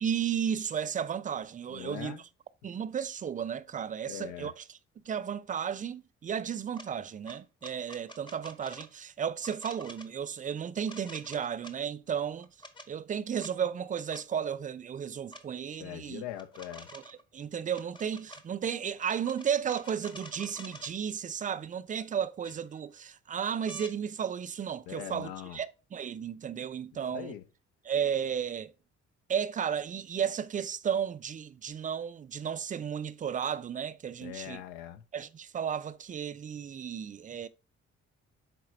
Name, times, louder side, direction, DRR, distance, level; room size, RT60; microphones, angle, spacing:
voice 1, 0.0-2.3 2.6-4.8 5.1-12.5 12.9-16.2 16.9-27.3 27.8-28.7 29.3-34.6 35.1-37.5, right 8 dB, 20° right, 0.5 m, -34 dB
voice 2, 1.7-2.2 4.1-4.5 15.8-16.9 24.9-25.6 27.1-27.4 34.2-35.0, left 12 dB, 65° left, 0.8 m, -41 dB
sound 1, 6.7-6.9 7.2-8.9 9.4-10.1 10.8-11.8 12.4-12.9 13.4-13.5 14.1-14.2 15.3-15.4 16.3-17.2 17.7-18.4 19.0-20.9 22.0-22.1 22.4-23.0 23.7-23.9 25.5-25.6, equal, 15° left, 0.9 m, -48 dB
5.9 x 4.7 x 4.5 m
figure-of-eight pair, 45°, 36 cm